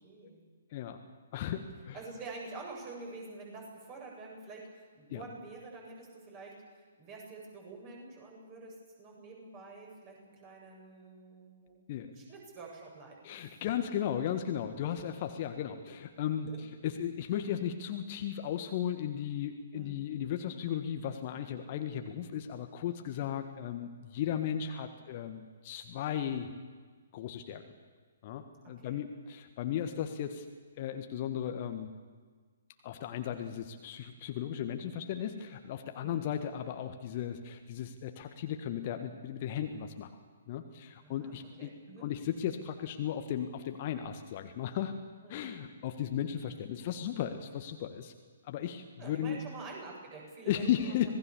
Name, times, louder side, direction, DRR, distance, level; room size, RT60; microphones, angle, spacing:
voice 1, 0.0-0.4 1.9-11.8 12.2-13.6 16.5-16.6 19.7-19.9 28.6-29.0 36.0-36.2 41.0-42.1 45.2-45.5 49.0-51.1, right 3 dB, 25° right, 0 dB, 7.8 m, -47 dB
voice 2, 0.7-1.0 1.3-2.0 5.1-5.2 11.9-12.1 13.2-26.5 27.1-27.6 28.2-30.4 30.8-31.9 32.8-40.1 40.5-41.7 42.0-44.9 45.3-48.1 48.4-49.4 50.5-51.1, left 9 dB, 35° left, 7 dB, 1.5 m, -35 dB
26.5 x 19.0 x 7.1 m, 1.5 s
figure-of-eight pair, 125°, 0 cm